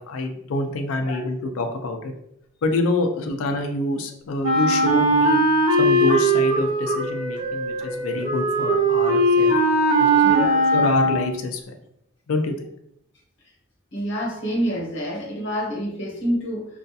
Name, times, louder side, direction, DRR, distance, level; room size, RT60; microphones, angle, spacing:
voice 1, 0.0-2.1 2.6-5.4 5.8-9.5 10.0-11.8 12.3-12.7, left 2 dB, 80° left, 6 dB, 0.4 m, -26 dB
Wind instrument woodwind instrument, 4.4-11.4, right 1 dB, 65° right, 0.8 m, -19 dB
voice 2, 10.2-10.6 13.9-16.7, equal, 60° left, -2 dB, 0.9 m, -27 dB
2.4 x 2.3 x 2.6 m, 0.74 s
head